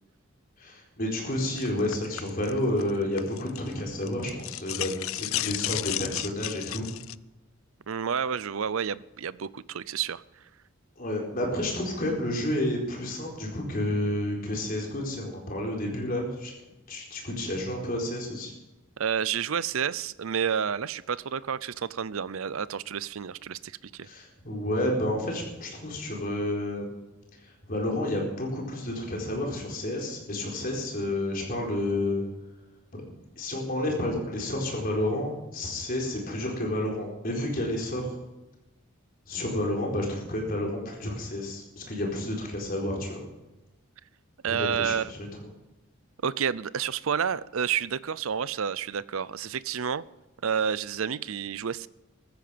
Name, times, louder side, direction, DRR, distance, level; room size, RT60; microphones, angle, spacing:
voice 1, 0.6-6.9 11.0-16.5 16.9-18.5 24.0-27.0 27.4-32.2 32.9-33.0 33.4-38.1 39.3-43.2 44.5-45.3, left 1 dB, 40° left, -1 dB, 4.4 m, -30 dB
sound 1, 1.6-3.7 4.0-7.2, left 15 dB, 65° left, 0.4 m, -33 dB
voice 2, 7.9-10.2 19.0-24.1 44.4-45.1 46.2-50.0 50.4-51.9, right 7 dB, 70° right, 19 dB, 0.5 m, -30 dB
15.5 x 14.0 x 5.2 m, 1.0 s
head